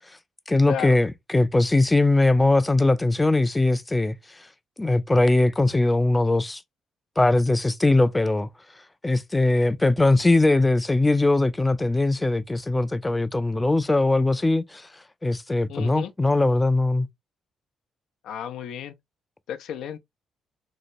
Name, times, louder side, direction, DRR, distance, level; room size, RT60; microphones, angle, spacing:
voice 1, 0.5-4.1 4.8-6.6 7.2-8.5 9.0-14.9 15.2-17.1, left 2 dB, 15° left, 0.4 m, -21 dB
voice 2, 15.7-16.1 18.2-18.9 19.5-20.0, left 9 dB, 80° left, 0.5 m, -33 dB
4.0 x 2.2 x 2.5 m
cardioid pair, 90°, 0 cm